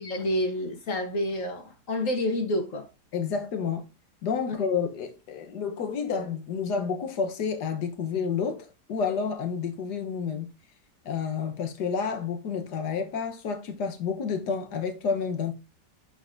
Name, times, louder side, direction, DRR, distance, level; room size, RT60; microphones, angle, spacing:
voice 1, 0.0-2.9, left 1 dB, 55° left, 1.5 m, -28 dB
voice 2, 3.1-3.8 4.2-10.5 11.0-15.5, left 6 dB, 75° left, 1.6 m, -30 dB
11.5 x 4.0 x 2.6 m
omnidirectional pair, 1.8 m